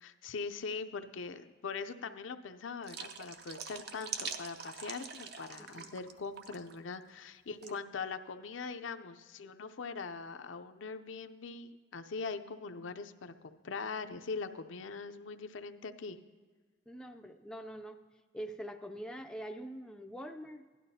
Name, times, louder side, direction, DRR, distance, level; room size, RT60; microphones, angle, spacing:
voice 1, 0.0-16.2, left 4 dB, 80° left, 9 dB, 0.5 m, -42 dB
sound 1, 2.8-6.1 6.4-6.7 7.6-7.8, right 6 dB, 55° right, 0.7 m, -43 dB
voice 2, 5.6-6.0 7.6-7.9 16.9-18.0 18.3-20.7, equal, 5° left, 5 dB, 0.4 m, -44 dB
16.5 x 11.5 x 2.7 m, 1.5 s
head